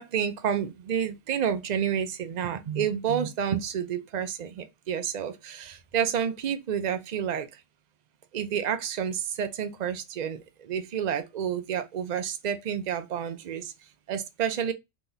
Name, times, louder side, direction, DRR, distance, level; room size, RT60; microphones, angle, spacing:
voice 1, 0.0-7.6 8.3-14.7, right 8 dB, 85° right, 0.3 m, -30 dB
3.9 x 3.0 x 3.8 m
omnidirectional pair, 1.4 m